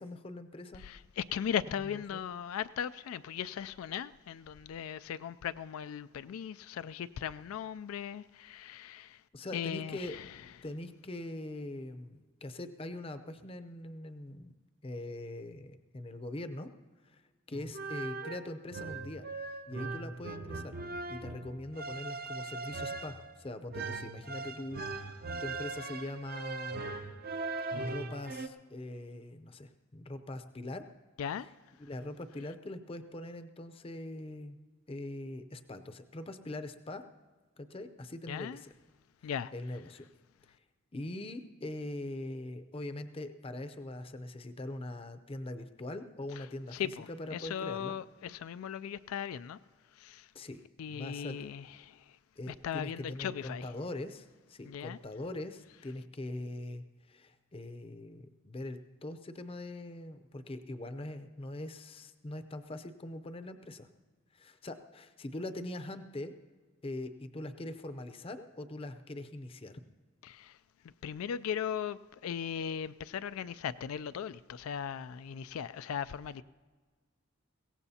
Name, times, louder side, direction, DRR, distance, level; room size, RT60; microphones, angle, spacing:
voice 1, 0.0-0.8 2.1-2.2 9.3-10.2 10.6-14.5 14.8-16.7 17.1-17.2 17.5-19.3 19.7-20.8 21.1-26.8 27.7-30.9 31.8-34.6 34.9-37.0 37.6-38.7 39.5-40.1 40.9-46.7 47.1-47.9 50.3-51.5 52.4-63.9 64.3-66.3 66.8-69.8, left 1 dB, 25° left, 0.6 m, -42 dB
voice 2, 0.8-9.2 9.5-10.4 31.2-31.5 38.3-38.6 39.2-39.5 46.4-46.5 46.7-49.6 49.9-50.3 50.8-52.2 52.5-53.7 54.6-55.0 70.2-70.6 70.8-76.4, left 8 dB, 85° left, 0.3 m, -38 dB
sound 1, 17.5-28.5, right 3 dB, 45° right, 0.6 m, -40 dB
22.0 x 17.0 x 2.8 m
head